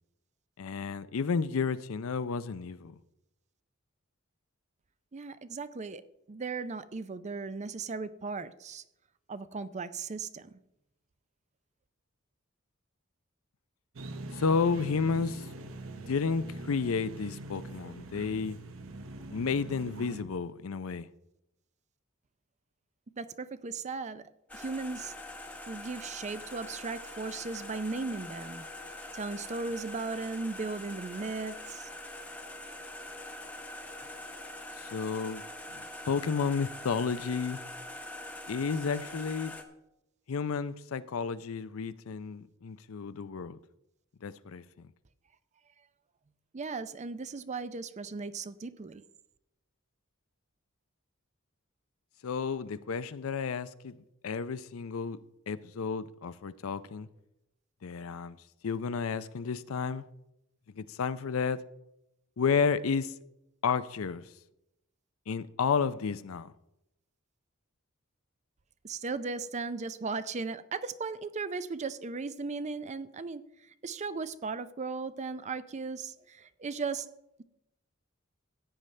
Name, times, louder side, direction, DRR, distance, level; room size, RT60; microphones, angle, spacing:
voice 1, 0.6-3.0 14.3-15.5 15.9-18.6 19.3-21.1 34.8-35.4 35.7-37.6 38.5-39.6 40.3-43.6 44.2-44.6 52.2-53.9 54.2-55.2 55.5-57.1 57.8-58.4 58.6-60.0 60.7-61.6 62.4-63.1 63.6-64.2 65.3-66.5, left 5 dB, 80° left, 0.5 m, -31 dB
voice 2, 5.1-6.0 6.3-8.8 9.3-10.6 23.2-25.1 25.7-28.7 29.1-31.9 46.5-49.0 68.8-77.1, right 4 dB, 35° right, 0.5 m, -37 dB
sound 1, 14.0-20.2, right 2 dB, 70° right, 0.9 m, -43 dB
sound 2, 24.5-39.6, left 1 dB, 5° left, 1.0 m, -44 dB
15.0 x 9.0 x 3.3 m
head